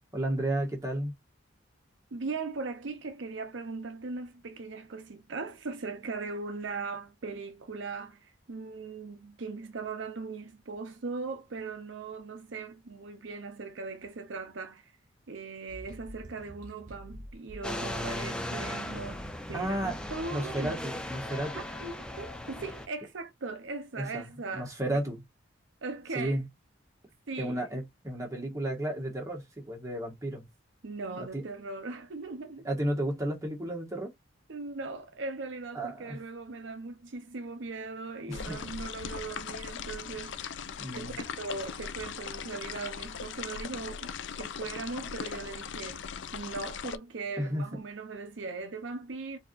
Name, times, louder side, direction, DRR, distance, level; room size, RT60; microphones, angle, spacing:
voice 1, 0.1-1.2 19.5-20.0 20.3-21.7 23.9-25.2 26.1-26.4 27.4-30.5 31.2-31.4 32.6-34.1 35.7-36.2 38.3-38.7 40.8-41.2 47.4-47.8, right 1 dB, 15° right, 1.5 m, -33 dB
voice 2, 2.1-14.9 15.3-20.9 21.5-25.0 25.8-26.4 27.3-27.6 30.8-32.7 34.5-46.0 46.3-49.4, right 3 dB, 70° right, 0.6 m, -39 dB
sound 1, 15.7-20.8, right 1 dB, 40° right, 1.6 m, -47 dB
sound 2, 17.6-22.9, left 1 dB, 5° left, 0.5 m, -37 dB
sound 3, 38.3-47.0, left 7 dB, 65° left, 0.4 m, -39 dB
4.6 x 2.8 x 2.4 m
head